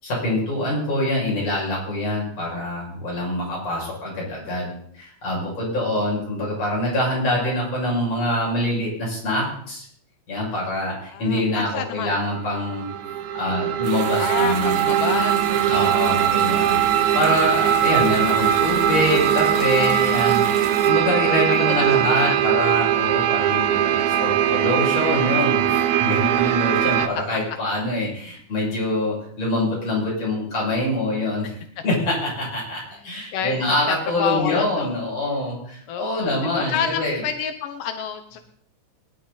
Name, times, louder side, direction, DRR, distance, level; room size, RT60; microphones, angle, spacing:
voice 1, 0.0-9.8 10.3-12.9 13.3-14.8 15.7-31.6 31.8-37.2, left 1 dB, 50° left, -4 dB, 7.4 m, -25 dB
voice 2, 11.1-12.2 14.2-16.2 21.5-21.9 22.2-22.4 27.3-27.4 32.9-33.0 33.3-33.6 33.9-34.9 35.9-38.4, left 8 dB, 85° left, 7 dB, 2.6 m, -29 dB
sound 1, 12.3-27.1, right 11 dB, 75° right, 2.2 m, -20 dB
sound 2, 13.8-20.9, right 5 dB, 50° right, 2.4 m, -35 dB
21.5 x 11.0 x 4.0 m, 0.66 s
omnidirectional pair, 3.7 m